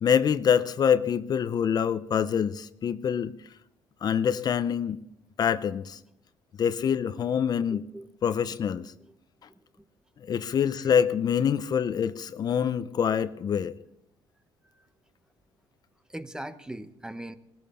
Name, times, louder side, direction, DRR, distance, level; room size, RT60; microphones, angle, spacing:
voice 1, 0.0-3.3 4.0-5.0 5.4-6.0 6.6-7.8 8.2-8.9 10.3-13.8, left 8 dB, 45° left, 0.6 m, -25 dB
voice 2, 7.7-8.1 9.0-9.1 9.5-9.6 14.7-14.9 16.1-17.4, right 1 dB, 10° right, 0.8 m, -40 dB
19.0 x 14.0 x 4.2 m
cardioid pair, 110°, 9 cm